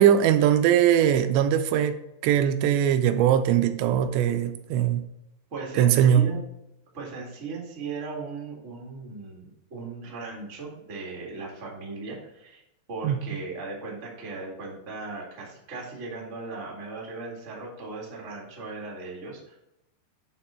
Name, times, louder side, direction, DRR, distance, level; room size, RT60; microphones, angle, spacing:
voice 1, 0.0-2.0 2.2-5.0 5.8-6.2 13.0-13.2, right 10 dB, 85° right, 9 dB, 2.8 m, -20 dB
voice 2, 5.5-6.4 6.9-12.6 12.9-19.6, right 3 dB, 30° right, -4 dB, 1.2 m, -37 dB
11.0 x 3.7 x 4.4 m, 0.84 s
omnidirectional pair, 5.0 m